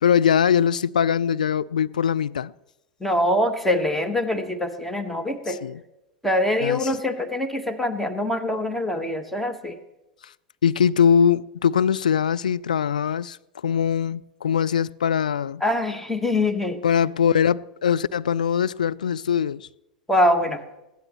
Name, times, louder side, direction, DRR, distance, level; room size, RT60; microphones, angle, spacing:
voice 1, 0.0-2.5 5.5-5.8 6.6-6.9 10.6-13.4 13.6-15.6 16.8-19.7, left 8 dB, 75° left, 0.4 m, -21 dB
voice 2, 3.0-5.6 6.2-9.8 15.6-16.8 20.1-20.6, left 1 dB, 5° left, 1.5 m, -24 dB
21.5 x 15.5 x 3.2 m
figure-of-eight pair, 90°, 4 cm